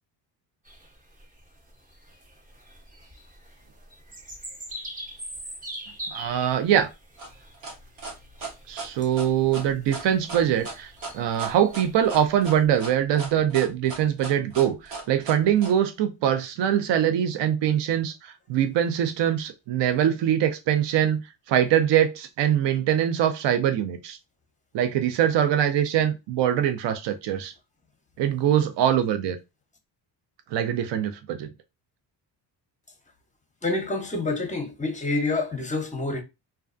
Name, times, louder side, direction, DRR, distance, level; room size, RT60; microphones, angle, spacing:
sound 1, 0.6-12.6, right 1 dB, 15° right, 0.7 m, -44 dB
voice 1, 6.1-6.9 8.7-21.2 21.5-24.2 24.7-27.5 28.2-29.4 30.5-31.5, right 10 dB, 65° right, 0.6 m, -23 dB
sound 2, 7.2-15.7, right 3 dB, 80° right, 1.2 m, -37 dB
voice 2, 33.6-36.2, left 2 dB, 15° left, 0.7 m, -27 dB
2.4 x 2.2 x 2.5 m
cardioid pair, 80°, 47 cm